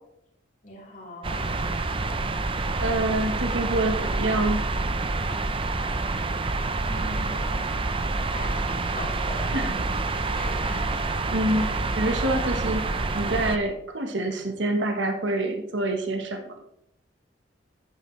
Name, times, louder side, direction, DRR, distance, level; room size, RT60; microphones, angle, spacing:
voice 1, 0.6-1.6 6.8-7.5 8.2-10.0 10.3-11.0 11.5-12.0 12.8-12.9, left 1 dB, 45° left, -4 dB, 3.6 m, -40 dB
sound 1, 1.2-13.6, right 3 dB, 30° right, 0.6 m, -27 dB
voice 2, 2.6-4.6 9.5-9.7 10.6-10.9 11.3-11.7 11.9-16.6, right 1 dB, 80° right, 5 dB, 1.3 m, -27 dB
10.5 x 9.1 x 3.2 m, 0.76 s
head